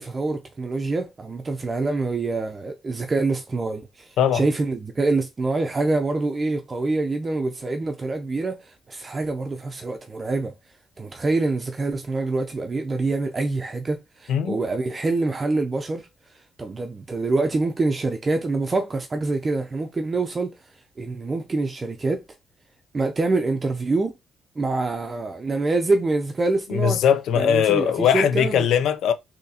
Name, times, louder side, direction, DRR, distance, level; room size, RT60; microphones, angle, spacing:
voice 1, 0.0-10.5 11.0-16.1 16.6-20.6 21.0-22.2 22.9-24.1 24.6-27.0 27.4-28.7, right 3 dB, 30° right, 0.5 m, -25 dB
voice 2, 26.7-29.1, left 8 dB, 80° left, 0.5 m, -20 dB
3.9 x 2.8 x 2.8 m
cardioid pair, 90°, 0 cm